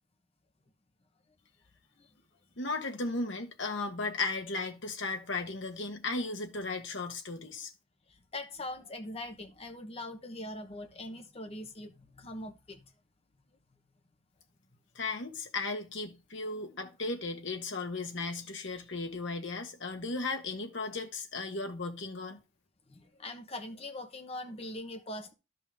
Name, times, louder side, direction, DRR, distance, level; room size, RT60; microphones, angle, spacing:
voice 1, 2.6-7.7 14.9-22.4, left 3 dB, 65° left, 1.4 m, -36 dB
voice 2, 8.1-12.9 22.9-25.3, left 1 dB, 30° left, 1.1 m, -42 dB
12.5 x 5.4 x 3.5 m
head